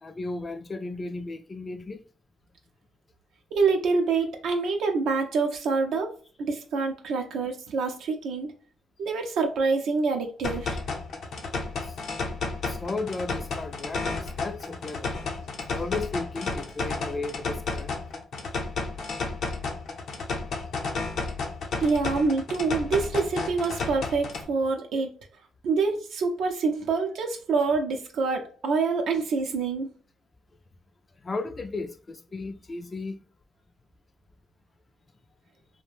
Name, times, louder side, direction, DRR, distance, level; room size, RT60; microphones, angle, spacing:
voice 1, 0.0-2.0 12.7-15.2 15.7-18.0 31.2-33.2, left 3 dB, 30° left, 0.3 m, -34 dB
voice 2, 3.5-6.1 6.4-8.5 9.0-10.8 21.8-25.1 25.6-29.9, right 4 dB, 75° right, 0.4 m, -26 dB
sound 1, 10.4-24.4, left 3 dB, 65° left, 0.6 m, -32 dB
2.4 x 2.1 x 3.2 m
cardioid pair, 90°, 0 cm